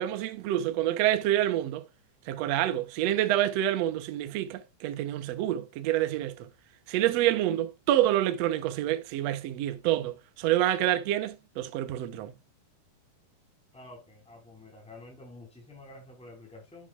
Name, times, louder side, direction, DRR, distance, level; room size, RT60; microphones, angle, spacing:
voice 1, 0.0-1.8 2.3-6.5 6.9-12.3, right 13 dB, 70° right, 1.6 m, -27 dB
voice 2, 13.7-16.9, left 2 dB, ahead, 4.4 m, -49 dB
9.8 x 8.4 x 2.4 m
omnidirectional pair, 4.2 m